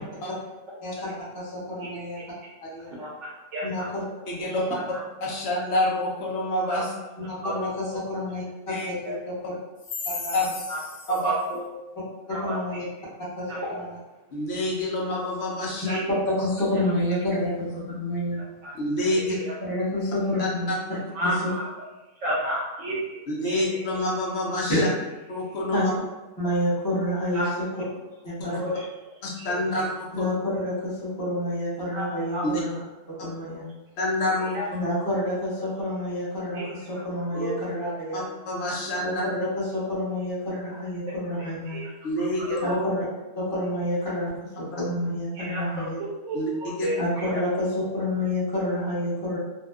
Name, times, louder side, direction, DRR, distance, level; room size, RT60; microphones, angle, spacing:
voice 1, 0.8-2.2 2.6-2.9 3.6-4.0 7.3-9.5 10.0-10.4 12.3-12.8 13.4-13.8 15.8-18.4 19.3-20.7 21.2-21.4 24.7-24.8 25.7-25.8 26.4-27.5 28.2-28.6 30.1-32.8 33.2-33.6 34.7-38.2 39.0-41.8 42.6-43.0 43.3-44.3 44.6-46.0 47.0-47.7 47.9-49.4, left 1 dB, 15° left, -12 dB, 0.8 m, -28 dB
voice 2, 2.9-3.9 4.7-4.8 6.7-6.8 7.4-7.5 9.0-9.2 10.7-10.8 11.1-11.7 12.3-12.5 13.5-13.7 15.9-16.0 18.6-18.7 19.5-19.6 21.1-21.7 22.2-23.2 23.4-23.8 27.3-27.5 28.6-28.8 29.4-29.5 31.9-32.4 33.5-33.6 34.4-34.7 36.5-36.6 37.3-37.5 41.1-41.2 41.7-41.9 42.5-42.8 45.3-45.9 46.2-47.4, right 1 dB, 70° right, -5 dB, 0.9 m, -31 dB
voice 3, 4.3-4.6 5.2-6.9 8.7-8.9 10.3-10.7 11.1-11.3 14.3-16.0 18.7-19.3 20.4-20.8 21.2-21.3 23.3-24.9 25.3-25.9 28.5-28.6 29.2-30.3 32.4-32.6 34.0-34.8 38.1-39.2 42.0-42.6 46.3-46.9, left 1 dB, 60° left, -4 dB, 0.8 m, -27 dB
2.7 x 2.3 x 2.3 m, 1.1 s
omnidirectional pair, 1.4 m